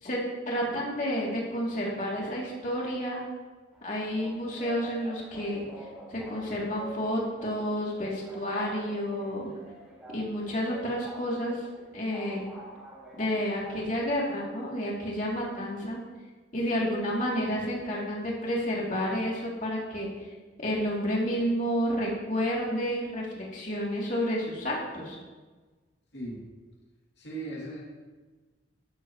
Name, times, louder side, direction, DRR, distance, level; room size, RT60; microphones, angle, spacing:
voice 1, 0.0-3.2 3.8-5.7 6.1-9.5 10.1-11.6 11.9-12.5 13.1-16.0 16.5-20.3 20.6-25.2, equal, 45° left, -4 dB, 2.8 m, -30 dB
sound 1, 3.7-14.2, right 1 dB, 5° right, 4.3 m, -47 dB
voice 2, 26.1-26.4 27.2-27.8, right 2 dB, 70° left, -4 dB, 2.5 m, -37 dB
13.0 x 12.5 x 3.1 m, 1.3 s
head